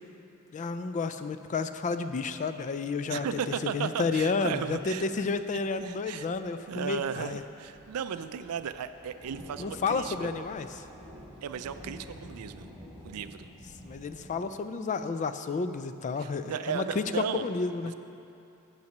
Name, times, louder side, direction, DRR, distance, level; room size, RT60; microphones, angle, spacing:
voice 1, 0.5-3.3 3.7-7.4 9.6-10.8 13.8-17.9, left 4 dB, 35° left, 10 dB, 0.3 m, -31 dB
voice 2, 3.1-5.1 5.8-6.3 6.7-10.3 11.4-12.7 13.0-13.5 16.2-17.5, right 7 dB, 80° right, 11 dB, 0.4 m, -35 dB
sound 1, 4.7-14.4, equal, 5° right, 2.4 m, -50 dB
9.1 x 5.7 x 6.6 m, 2.8 s
head